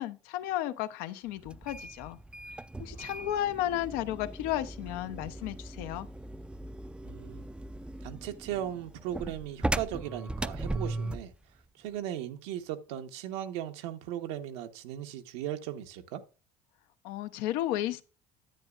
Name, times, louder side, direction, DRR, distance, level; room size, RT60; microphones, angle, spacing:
voice 1, 0.0-2.2 2.8-6.1 17.0-18.1, left 13 dB, 80° left, 0.8 m, -33 dB
sound 1, 1.4-11.3, right 2 dB, 5° right, 0.4 m, -38 dB
voice 2, 7.0-7.5 8.0-11.3 11.7-16.2, right 11 dB, 85° right, 1.2 m, -37 dB
10.5 x 8.7 x 2.5 m
supercardioid pair, 90°, 15 cm